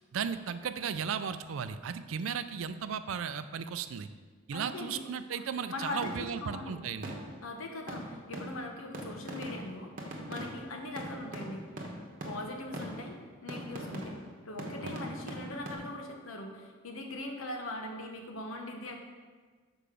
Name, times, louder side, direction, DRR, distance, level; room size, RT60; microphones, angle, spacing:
voice 1, 0.1-4.1 4.5-7.2 14.8-15.0, right 7 dB, 75° right, 11 dB, 0.4 m, -35 dB
voice 2, 4.5-5.0 5.7-6.8 7.4-11.7 12.2-14.2 14.5-19.0, left 2 dB, 80° left, 3 dB, 1.0 m, -41 dB
sound 1, 6.0-6.5 7.0-7.6 7.9-15.8, right 1 dB, 40° right, 1.1 m, -42 dB
6.7 x 5.0 x 5.0 m, 1.5 s
head